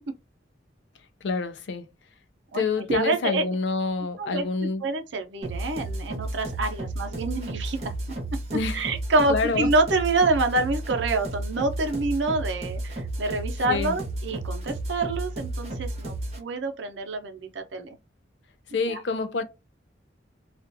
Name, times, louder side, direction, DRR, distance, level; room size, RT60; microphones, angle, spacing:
voice 1, 1.2-1.9 2.5-4.8 8.5-8.8 9.3-9.7 13.7-13.9 18.7-19.4, left 4 dB, 80° left, 0.5 m, -27 dB
voice 2, 2.9-3.4 4.2-7.9 8.7-18.0 18.9-19.0, right 2 dB, 80° right, 0.6 m, -27 dB
sound 1, 5.4-16.4, right 1 dB, 35° right, 0.9 m, -33 dB
2.4 x 2.3 x 2.6 m
head